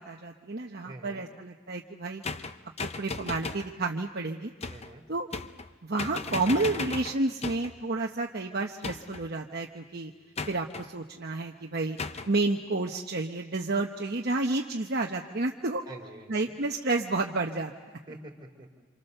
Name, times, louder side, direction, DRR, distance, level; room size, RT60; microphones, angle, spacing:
voice 1, 0.0-2.5 3.0-4.5 5.1-5.3 5.8-10.1 10.5-12.0 12.3-15.8 16.3-18.0, right 2 dB, 45° right, 2 dB, 1.0 m, -30 dB
voice 2, 0.8-1.3 4.7-5.0 15.8-16.5 18.1-18.8, right 2 dB, 20° right, 1 dB, 3.7 m, -46 dB
sound 1, 2.2-3.7 4.6-4.9 5.3-5.7 6.0-7.8 8.8-9.3 10.4-10.9 12.0-12.3, left 4 dB, 30° left, 0.7 m, -36 dB
28.0 x 26.5 x 6.8 m, 1.3 s
head